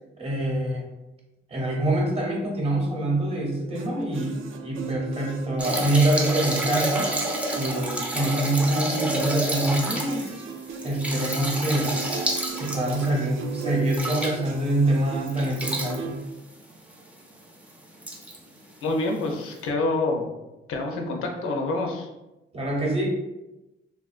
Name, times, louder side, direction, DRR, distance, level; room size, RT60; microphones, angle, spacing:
voice 1, 0.2-0.8 1.5-7.1 7.5-10.4 10.8-11.9 12.6-16.2 22.5-23.1, right 1 dB, 30° right, -1 dB, 0.7 m, -25 dB
sound 1, 3.7-16.2, right 6 dB, 70° right, 0.4 m, -37 dB
sound 2, 5.6-14.8 15.3-16.0 16.9-17.0 17.3-17.4 18.0-18.4 19.4-19.5, right 1 dB, 5° right, 0.4 m, -29 dB
voice 2, 18.8-20.3 20.7-22.1, left 2 dB, 90° left, 2 dB, 0.6 m, -27 dB
3.4 x 2.4 x 2.4 m, 0.98 s
cardioid pair, 155°, 21 cm